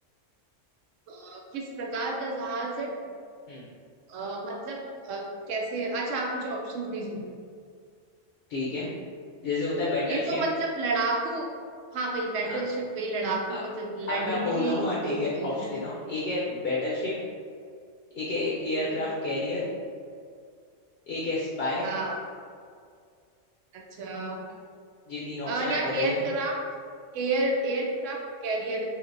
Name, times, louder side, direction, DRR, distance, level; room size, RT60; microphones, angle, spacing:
voice 1, 1.1-2.9 4.1-7.3 10.1-11.5 11.9-15.5 18.9-19.0 21.8-22.2 24.0-24.4 25.5-26.6 27.1-28.9, right 2 dB, 80° right, -1 dB, 0.9 m, -30 dB
voice 2, 8.5-8.9 9.4-10.4 12.4-12.6 13.5-13.6 14.1-17.1 18.2-19.6 21.1-21.9 25.1-26.2, left 2 dB, 60° left, -6 dB, 0.7 m, -30 dB
3.3 x 2.8 x 2.5 m, 2.2 s
omnidirectional pair, 1.3 m